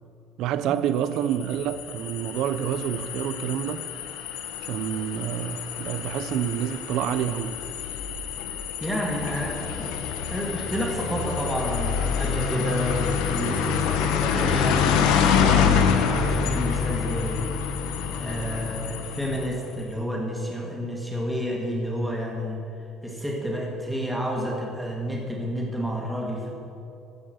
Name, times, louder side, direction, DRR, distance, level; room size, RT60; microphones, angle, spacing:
voice 1, 0.4-3.9 4.6-7.6, right 10 dB, 55° right, 0.5 m, -28 dB
sound 1, 1.1-19.7, left 7 dB, 85° left, 1.0 m, -27 dB
voice 2, 8.5-9.9 10.3-17.5 18.2-22.6 23.0-26.6, equal, ahead, 1.7 m, -30 dB
15.0 x 6.2 x 6.4 m
cardioid pair, 175°, 0 cm